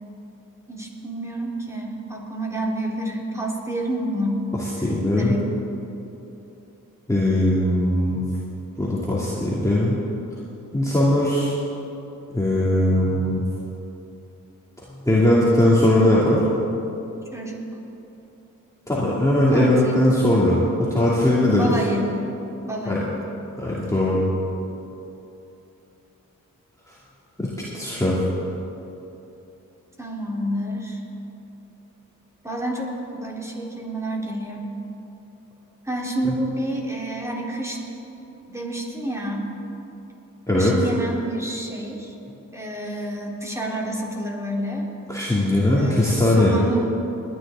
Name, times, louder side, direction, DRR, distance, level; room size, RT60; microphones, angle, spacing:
voice 1, 0.7-4.4 4.8-5.4 17.3-17.8 19.5-20.0 21.5-22.1 22.6-23.1 30.0-31.0 32.4-34.7 35.8-37.8 38.5-39.5 40.5-42.1 42.5-44.9 45.8-46.9, right 1 dB, 10° right, -3 dB, 3.3 m, -29 dB
voice 2, 4.8-5.3 7.1-8.2 8.8-10.0 10.7-11.6 12.3-13.4 15.0-16.4 18.9-20.6 20.9-21.7 22.9-23.0 23.6-24.2 27.4-27.5 27.7-28.2 40.5-40.7 45.1-46.5, left 1 dB, 10° left, -8 dB, 2.6 m, -19 dB
20.5 x 10.5 x 3.8 m, 2.9 s
cardioid pair, 50°, 34 cm